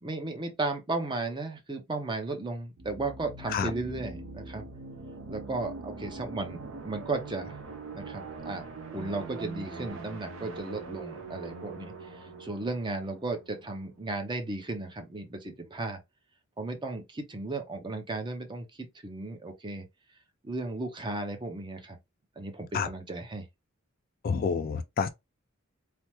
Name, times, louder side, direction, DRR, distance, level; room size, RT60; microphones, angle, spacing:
voice 1, 0.0-4.6 5.3-7.6 7.9-16.0 16.6-19.9 20.4-22.0 22.4-23.5, right 2 dB, 25° right, 0.6 m, -35 dB
sound 1, 2.8-14.3, right 3 dB, 70° right, 0.7 m, -42 dB
voice 2, 24.2-25.1, left 6 dB, 45° left, 0.3 m, -28 dB
3.3 x 2.0 x 2.9 m
head